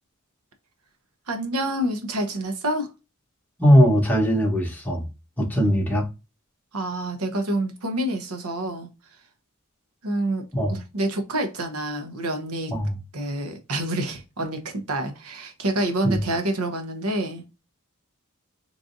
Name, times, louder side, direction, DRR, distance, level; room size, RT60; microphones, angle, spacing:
voice 1, 1.3-2.9 6.7-8.9 10.0-12.7 13.1-17.4, right 1 dB, 80° right, 1.0 m, -27 dB
voice 2, 3.6-5.0 5.4-6.0 10.5-10.7 12.7-12.9 16.0-16.2, equal, 10° left, 1.3 m, -19 dB
3.7 x 3.3 x 2.7 m
head